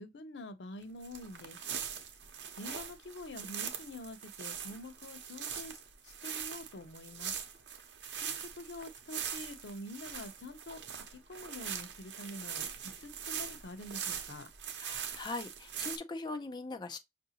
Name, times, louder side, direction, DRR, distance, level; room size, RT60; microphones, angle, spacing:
voice 1, 0.0-1.6 2.5-7.4 8.1-14.5, left 1 dB, 90° left, 0.6 m, -47 dB
sound 1, 1.0-16.0, right 8 dB, 85° right, 0.7 m, -42 dB
voice 2, 14.8-17.0, left 3 dB, 25° left, 0.5 m, -41 dB
5.6 x 2.6 x 2.7 m
head